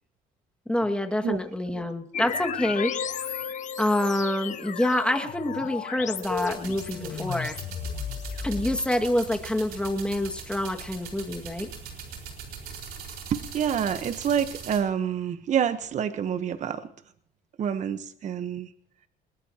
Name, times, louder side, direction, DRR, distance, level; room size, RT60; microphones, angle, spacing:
voice 1, 0.7-2.9 3.8-7.6 8.4-11.7, left 1 dB, 5° left, 4 dB, 2.0 m, -27 dB
sound 1, 2.1-9.3, left 7 dB, 50° left, 1.4 m, -34 dB
sound 2, 6.2-14.8, right 6 dB, 70° right, 4.8 m, -41 dB
voice 2, 13.3-16.9 17.6-18.7, right 8 dB, 45° right, 10 dB, 1.1 m, -27 dB
21.0 x 20.5 x 2.9 m, 0.66 s
cardioid pair, 100°, 16 cm